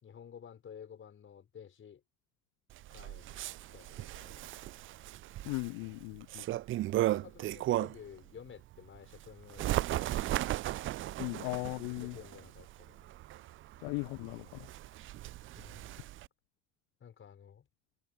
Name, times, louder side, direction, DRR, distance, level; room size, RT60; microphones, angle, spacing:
voice 1, 0.0-2.0 2.9-3.4 3.7-4.6 7.1-10.4 11.9-13.1 15.6-15.9 17.0-17.7, left 8 dB, 30° left, 5.1 m, -53 dB
Bird, 2.7-8.1 8.6-16.3, right 15 dB, 30° right, 0.6 m, -36 dB
voice 2, 5.4-6.4 11.2-12.2 13.8-14.7, left 36 dB, 50° left, 0.8 m, -37 dB
figure-of-eight pair, 70°, 38 cm